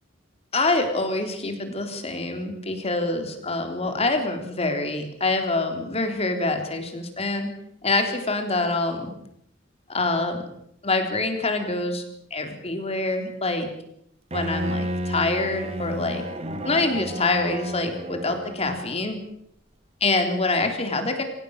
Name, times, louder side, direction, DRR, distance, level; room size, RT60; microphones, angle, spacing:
voice 1, 0.5-7.5 7.8-9.1 9.9-10.5 10.8-12.0 12.3-13.7 14.3-16.2 16.6-19.2 20.0-21.2, left 2 dB, 35° left, 5 dB, 3.7 m, -25 dB
Bowed string instrument, 14.3-19.1, right 1 dB, 35° right, 2.0 m, -32 dB
25.0 x 17.5 x 6.6 m, 0.74 s
head